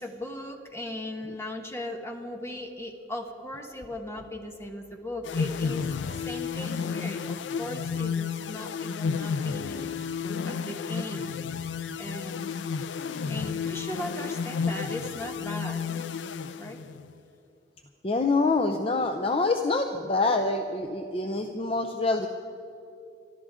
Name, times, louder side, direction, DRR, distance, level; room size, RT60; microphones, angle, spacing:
voice 1, 0.0-5.9 6.2-7.2 7.6-9.9 10.4-11.3 12.0-12.5 13.3-15.8 16.6-16.8, left 1 dB, 15° left, 3 dB, 1.4 m, -38 dB
sound 1, 5.2-17.1, left 6 dB, 75° left, 0.4 m, -32 dB
voice 2, 18.0-22.3, left 3 dB, 30° left, 5 dB, 0.6 m, -26 dB
23.0 x 13.5 x 3.7 m, 2.7 s
head